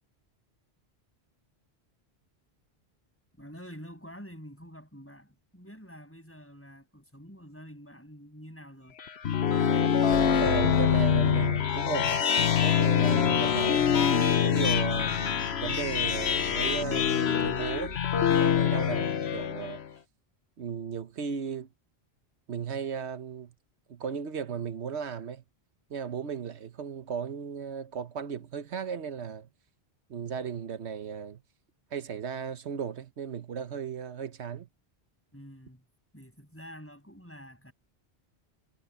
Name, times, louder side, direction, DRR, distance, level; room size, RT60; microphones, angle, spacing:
voice 1, 3.4-9.0 35.3-35.8 36.1-37.7, equal, 10° left, 6.6 m, -47 dB
sound 1, 9.0-19.8, left 8 dB, 80° left, 1.2 m, -25 dB
voice 2, 10.4-13.9 14.4-19.8 20.6-21.7 22.5-23.5 23.9-25.4 25.9-29.5 30.1-31.4 31.9-34.7, right 7 dB, 85° right, 1.3 m, -35 dB
omnidirectional pair, 1.1 m